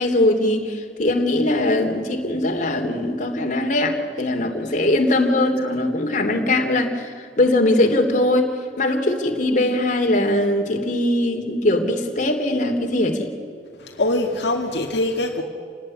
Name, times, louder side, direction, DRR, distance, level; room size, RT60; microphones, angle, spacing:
voice 1, 0.0-13.3, left 1 dB, 45° left, 3 dB, 3.1 m, -21 dB
voice 2, 13.8-15.4, left 2 dB, 70° left, 0 dB, 2.1 m, -24 dB
28.0 x 19.5 x 9.9 m, 2.2 s
head